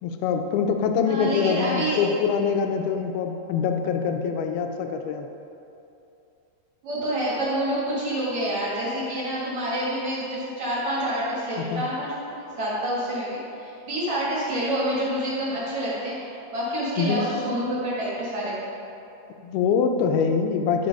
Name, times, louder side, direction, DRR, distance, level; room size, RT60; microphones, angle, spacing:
voice 1, 0.0-5.3 11.6-11.8 17.0-17.3 19.4-20.9, left 6 dB, 80° left, 5 dB, 2.3 m, -24 dB
voice 2, 1.0-2.0 6.8-18.6, right 1 dB, 50° right, -9 dB, 2.6 m, -28 dB
12.0 x 4.5 x 5.4 m, 2.7 s
omnidirectional pair, 5.0 m